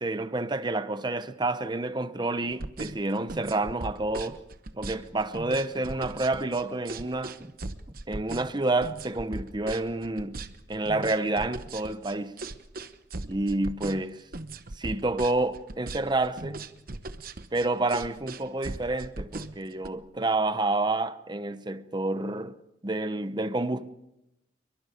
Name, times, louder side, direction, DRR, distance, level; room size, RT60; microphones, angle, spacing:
voice 1, 0.0-4.4 4.7-7.5 8.1-10.4 10.7-12.4 13.2-14.2 14.8-16.6 17.5-22.6 22.8-23.9, right 2 dB, 25° right, 0.8 m, -29 dB
sound 1, 2.5-19.9, right 2 dB, 50° right, 1.1 m, -38 dB
29.0 x 22.5 x 5.1 m
head